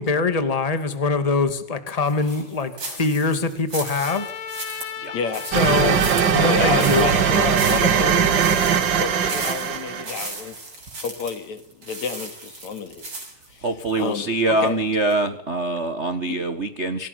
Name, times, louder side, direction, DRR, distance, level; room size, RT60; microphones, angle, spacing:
voice 1, 0.0-4.3 4.6-4.8 5.5-7.1, left 4 dB, 15° left, 9 dB, 1.6 m, -23 dB
sound 1, 2.1-14.1 14.6-14.7 15.1-15.2, right 2 dB, 35° right, 7.6 m, -36 dB
Trumpet, 4.0-8.4, left 7 dB, 85° left, 3.6 m, -36 dB
voice 2, 5.1-5.5 6.4-10.6 11.0-13.0 13.5-13.6 14.0-14.3 14.6-14.8 16.3-16.4, left 6 dB, 60° left, 9 dB, 3.4 m, -30 dB
sound 2, 5.5-10.3, right 7 dB, 50° right, 1.4 m, -20 dB
voice 3, 13.6-17.1, right 2 dB, 70° right, 8 dB, 0.6 m, -24 dB
26.0 x 18.0 x 9.6 m, 0.79 s
omnidirectional pair, 3.8 m